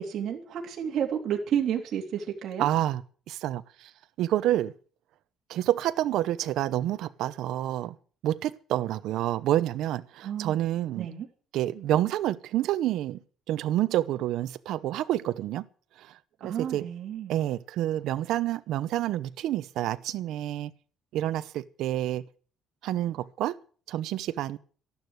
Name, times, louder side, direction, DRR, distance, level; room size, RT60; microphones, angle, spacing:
voice 1, 0.0-2.7 10.2-10.6 10.9-11.3 16.4-17.3, right 9 dB, 50° right, 3.0 m, -31 dB
voice 2, 2.6-3.0 3.3-3.9 4.2-4.7 5.5-7.9 8.2-11.1 11.5-13.2 13.5-15.7 16.0-16.1 16.4-16.8 17.3-20.7 21.1-22.2 22.8-23.5 23.9-24.6, right 13 dB, 70° right, 0.9 m, -28 dB
13.5 x 11.5 x 8.0 m
cardioid pair, 155°, 0 cm